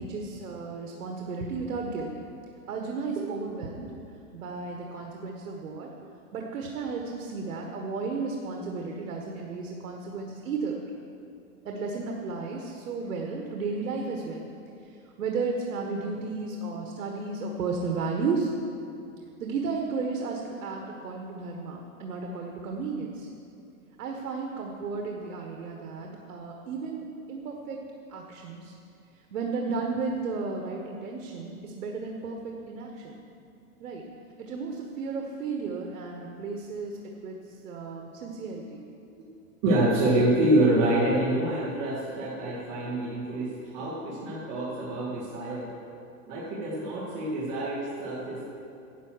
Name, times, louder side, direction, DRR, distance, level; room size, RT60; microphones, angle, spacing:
voice 1, 0.0-2.1 2.7-3.9 4.3-5.9 6.3-10.8 11.6-14.5 15.2-18.5 19.4-23.3 24.0-28.7 29.3-33.2 33.8-34.0 34.4-37.0 37.2-38.8, right 4 dB, 90° right, 1 dB, 1.5 m, -33 dB
voice 2, 39.6-45.7 46.3-48.5, right 1 dB, 30° right, -9 dB, 2.3 m, -26 dB
11.0 x 8.2 x 6.3 m, 2.6 s
supercardioid pair, 170°, 44 cm